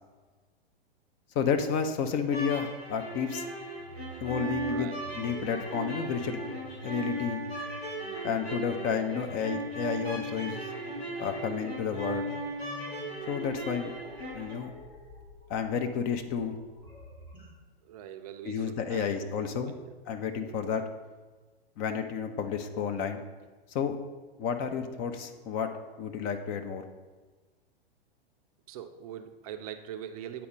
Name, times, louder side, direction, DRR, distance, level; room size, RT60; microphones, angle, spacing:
voice 1, 1.3-3.4 4.2-4.9 5.2-6.4 6.8-7.4 8.2-10.6 11.2-12.3 13.3-13.9 14.3-14.7 15.5-16.6 18.4-19.7 20.1-20.8 21.8-23.2 23.7-23.9 24.4-25.7 26.0-26.9, left 7 dB, 30° left, 6 dB, 0.6 m, -31 dB
sound 1, 2.2-14.5, right 2 dB, 85° left, 2.3 m, -37 dB
sound 2, 3.8-17.5, right 1 dB, 65° left, 2.3 m, -50 dB
voice 2, 4.7-5.1 5.4-5.6 17.8-19.9 20.4-20.7 28.7-30.5, right 10 dB, 40° right, 8 dB, 0.5 m, -43 dB
8.4 x 4.3 x 5.3 m, 1.3 s
figure-of-eight pair, 100°, 30 cm